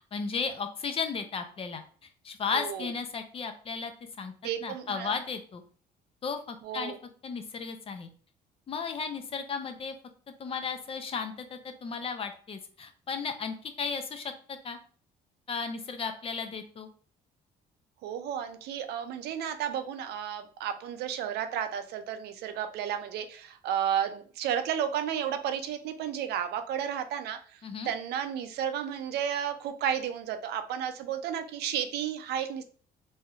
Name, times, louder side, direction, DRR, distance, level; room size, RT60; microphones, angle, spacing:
voice 1, 0.1-1.8 2.2-3.9 4.2-4.3 4.6-5.6 6.2-6.9 7.2-8.1 8.7-10.0 10.4-14.8 15.5-16.9 27.6-27.9, left 5 dB, 35° left, 7 dB, 0.5 m, -34 dB
voice 2, 2.5-2.9 4.4-5.1 6.6-7.0 18.0-27.4 27.9-32.6, right 9 dB, 75° right, 9 dB, 0.4 m, -32 dB
3.3 x 2.7 x 2.3 m, 0.43 s
cardioid pair, 110°, 17 cm